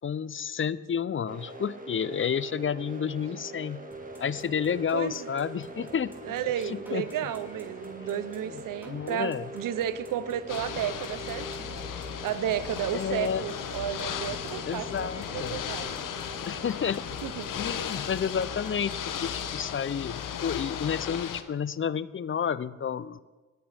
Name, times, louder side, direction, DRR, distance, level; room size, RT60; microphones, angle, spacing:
voice 1, 0.0-3.8 4.2-6.1 6.7-7.1 8.1-8.2 8.5-8.6 8.9-9.5 12.9-13.4 14.6-15.6 16.5-17.2 17.5-23.2, left 7 dB, 40° left, 17 dB, 0.5 m, -30 dB
sound 1, 1.3-19.5, right 2 dB, 25° right, 1.7 m, -43 dB
sound 2, 3.9-20.2, right 1 dB, 5° right, 3.9 m, -54 dB
voice 2, 4.9-5.3 6.2-11.8 12.2-16.0 17.2-17.5, right 10 dB, 80° right, 15 dB, 0.7 m, -33 dB
Ocean / Boat Water vehicle, 10.5-21.4, left 9 dB, 75° left, 0.9 m, -36 dB
20.0 x 8.5 x 3.4 m, 1.3 s
supercardioid pair, 45°, 32 cm